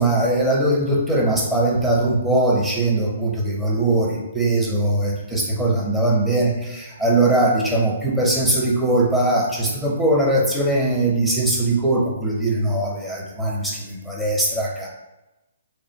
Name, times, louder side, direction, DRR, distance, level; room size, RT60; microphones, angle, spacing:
voice 1, 0.0-14.9, right 2 dB, 5° right, -3 dB, 0.8 m, -20 dB
3.4 x 2.4 x 4.3 m, 0.97 s
figure-of-eight pair, 130°, 0 cm